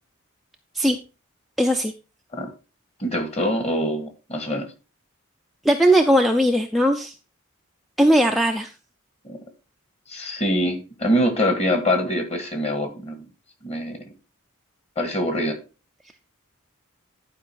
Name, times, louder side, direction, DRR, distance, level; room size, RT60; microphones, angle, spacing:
voice 1, 1.6-1.9 5.6-7.1 8.0-8.7, equal, ahead, 2 dB, 0.5 m, -18 dB
voice 2, 3.0-4.7 9.2-9.4 10.1-13.3 13.6-14.0 15.0-15.6, equal, 30° left, 7 dB, 1.8 m, -24 dB
11.0 x 5.0 x 4.6 m, 0.32 s
head